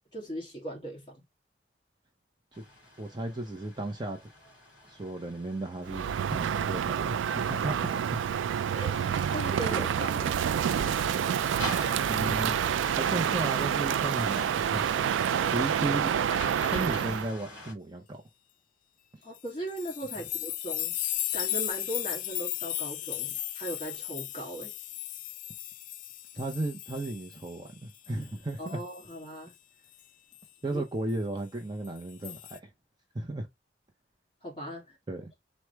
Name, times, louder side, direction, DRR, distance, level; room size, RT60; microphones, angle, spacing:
voice 1, 0.1-1.2 8.7-9.0 9.3-10.4 19.2-20.9 21.3-24.7 28.6-29.5 30.7-30.8 34.4-35.0, right 1 dB, 25° left, 2.5 m, -38 dB
sound 1, 2.5-17.7, left 1 dB, 5° right, 2.3 m, -46 dB
voice 2, 3.0-4.2 4.9-8.0 11.9-12.6 12.9-15.1 15.5-16.1 16.7-18.2 26.3-28.8 30.6-32.7 33.1-33.5 35.1-35.3, right 2 dB, 25° right, 0.6 m, -34 dB
Crow, 5.9-17.3, right 8 dB, 90° right, 0.3 m, -28 dB
sound 2, 19.4-27.7 28.0-29.1 30.3-30.4 31.9-32.6, left 14 dB, 45° left, 0.3 m, -35 dB
4.6 x 2.1 x 4.4 m
head